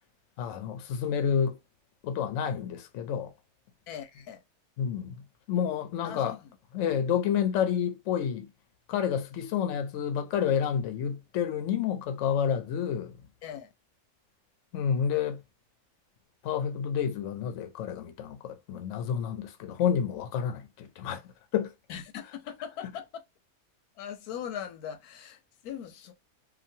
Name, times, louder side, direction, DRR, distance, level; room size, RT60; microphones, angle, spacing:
voice 1, 0.4-1.6 2.0-3.3 4.8-5.2 5.5-6.4 6.7-8.5 8.9-13.1 14.7-15.4 16.4-21.2 21.5-21.7, left 8 dB, 65° left, 0.8 m, -29 dB
voice 2, 3.9-4.4 6.0-6.6 13.4-13.7 21.9-23.2 24.0-26.1, left 9 dB, 90° left, 1.2 m, -40 dB
2.9 x 2.4 x 2.6 m
omnidirectional pair, 1.6 m